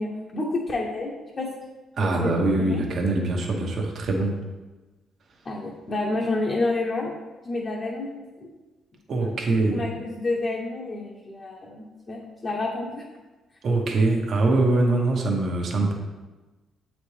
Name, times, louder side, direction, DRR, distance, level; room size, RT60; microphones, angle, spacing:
voice 1, 0.0-1.5 2.0-2.9 3.5-3.7 5.4-7.1 7.4-8.5 9.2-9.4 9.7-13.0, left 2 dB, 40° left, -2 dB, 0.8 m, -29 dB
voice 2, 2.0-4.4 9.1-9.8 13.6-15.9, right 2 dB, 60° right, 1 dB, 0.9 m, -23 dB
7.0 x 4.2 x 3.3 m, 1.2 s
cardioid pair, 90°, 0 cm